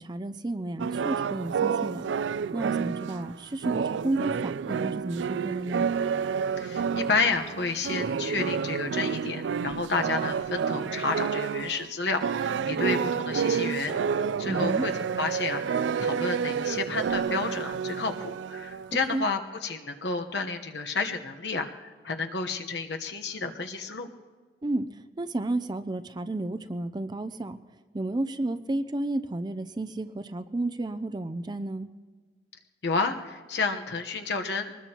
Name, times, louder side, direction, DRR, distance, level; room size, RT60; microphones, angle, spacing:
voice 1, 0.0-2.0 2.5-5.9 14.5-14.9 19.1-19.2 24.6-24.9 25.2-27.6 27.9-31.9, right 2 dB, 25° right, 10 dB, 0.4 m, -32 dB
sound 1, 0.8-11.9 12.2-19.0, right 6 dB, 90° right, 0.4 m, -29 dB
voice 2, 6.6-14.9 15.2-24.1 32.8-34.7, left 4 dB, 70° left, 5 dB, 1.1 m, -31 dB
24.0 x 20.0 x 2.9 m, 1.5 s
head